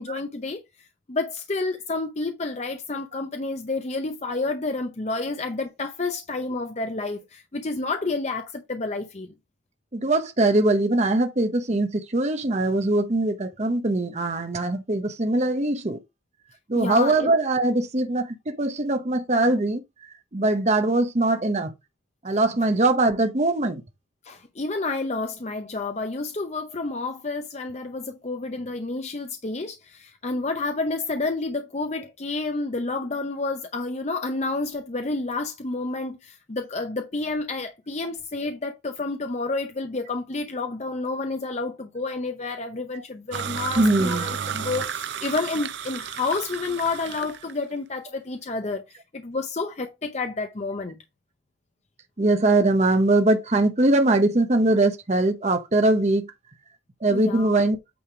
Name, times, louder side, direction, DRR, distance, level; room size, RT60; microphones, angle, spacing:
voice 1, 0.0-9.3 16.8-17.3 24.2-51.0 57.1-57.6, left 3 dB, 35° left, 0.6 m, -30 dB
voice 2, 9.9-16.0 16.7-19.8 20.3-21.7 22.2-23.8 43.8-44.3 52.2-56.3 57.0-57.8, right 2 dB, 35° right, 0.8 m, -21 dB
sound 1, 43.3-47.5, right 7 dB, 65° right, 0.5 m, -32 dB
8.6 x 3.5 x 4.7 m
head